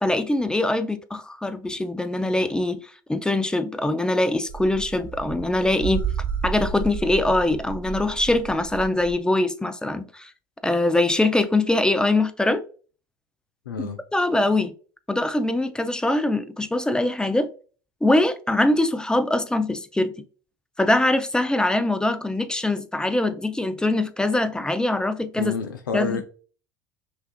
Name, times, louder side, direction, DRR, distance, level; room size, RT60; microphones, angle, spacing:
voice 1, 0.0-2.8 3.1-6.0 6.4-10.3 10.6-12.6 13.8-14.7 15.1-17.5 18.0-20.1 20.8-25.5 25.9-26.2, left 2 dB, 5° left, 0.4 m, -23 dB
sound 1, 4.5-9.1, right 6 dB, 55° right, 1.0 m, -31 dB
voice 2, 13.7-14.0 25.4-26.2, left 4 dB, 85° left, 0.4 m, -28 dB
5.5 x 2.3 x 2.2 m
hypercardioid pair, 75°, 11 cm